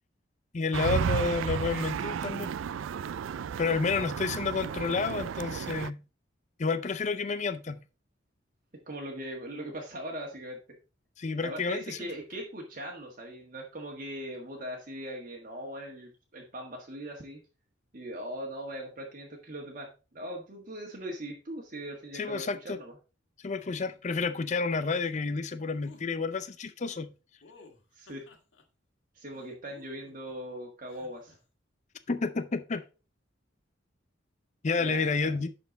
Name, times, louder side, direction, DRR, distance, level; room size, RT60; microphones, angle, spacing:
voice 1, 0.5-2.5 3.6-6.0 6.6-7.8 11.2-12.0 22.1-22.8 23.4-27.1 32.1-32.8 34.6-35.5, left 4 dB, 40° left, 0.5 m, -30 dB
sound 1, 0.7-5.9, right 7 dB, 85° right, 0.3 m, -33 dB
voice 2, 8.9-10.6 11.4-17.4 17.9-22.9 27.9-28.3 29.1-31.4 34.8-35.3, right 1 dB, 45° right, 1.6 m, -40 dB
sound 2, 25.8-26.1 27.4-28.6 29.3-30.3 30.9-31.4, left 3 dB, 75° left, 1.9 m, -55 dB
11.0 x 4.4 x 4.0 m
head